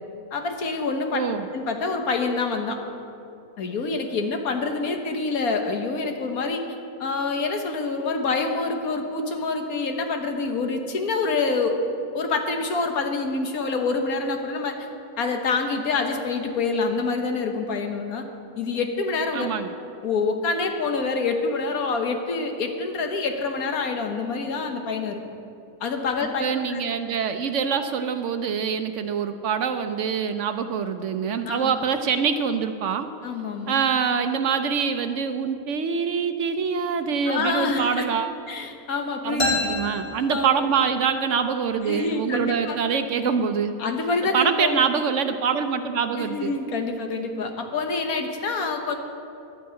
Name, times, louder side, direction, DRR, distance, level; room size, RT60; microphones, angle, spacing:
voice 1, 0.3-1.2 1.5-2.8 3.6-6.6 7.0-11.8 12.1-14.7 15.2-18.2 18.6-19.5 20.0-25.2 25.8-26.8 31.5-31.7 33.2-33.8 37.3-38.0 38.5-39.6 40.3-40.6 41.8-42.8 43.8-44.8 46.2-49.0, left 4 dB, 75° left, 5 dB, 1.6 m, -26 dB
voice 2, 1.1-1.5 19.3-19.7 26.4-33.1 33.7-38.3 39.2-43.7 44.3-46.5, right 6 dB, 65° right, 8 dB, 0.9 m, -25 dB
sound 1, 39.4-41.1, left 2 dB, 35° left, 1.8 m, -28 dB
10.5 x 9.1 x 8.7 m, 2.7 s
omnidirectional pair, 1.5 m